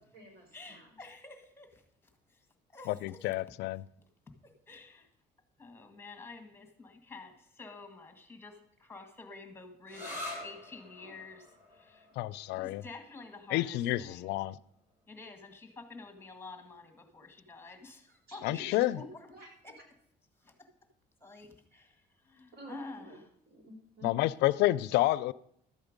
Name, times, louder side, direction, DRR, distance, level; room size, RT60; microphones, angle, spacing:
voice 1, 0.0-0.9 11.0-11.2 18.3-18.7 19.0-19.5 22.5-23.2 23.5-24.2, equal, 65° right, 2 dB, 3.9 m, -49 dB
voice 2, 0.5-2.5 2.7-3.3 4.0-5.1 5.6-12.1 12.5-14.3 15.1-19.3 19.6-19.8 20.4-20.7 21.2-23.1, left 3 dB, 15° left, 6 dB, 1.7 m, -50 dB
voice 3, 3.0-3.8 12.2-12.8 13.5-14.6 18.4-19.0 24.0-25.3, left 16 dB, 85° left, 19 dB, 0.4 m, -29 dB
sound 1, 9.9-17.3, left 1 dB, 15° right, 3.6 m, -48 dB
12.5 x 8.0 x 5.2 m, 0.70 s
cardioid pair, 110°, 17 cm